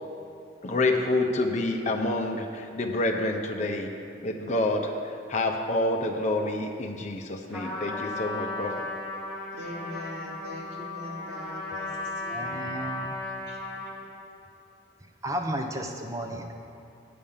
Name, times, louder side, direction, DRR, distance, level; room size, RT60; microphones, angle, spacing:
voice 1, 0.6-3.9 4.2-8.8, left 2 dB, 35° left, 2 dB, 0.7 m, -28 dB
Trumpet, 7.5-14.1, left 2 dB, ahead, 2.1 m, -35 dB
voice 2, 9.5-12.6 13.5-13.6, left 1 dB, 65° right, -6 dB, 2.4 m, -41 dB
voice 3, 12.3-13.1 15.2-16.5, right 1 dB, 15° right, 2 dB, 0.6 m, -33 dB
9.4 x 5.2 x 7.2 m, 2.6 s
head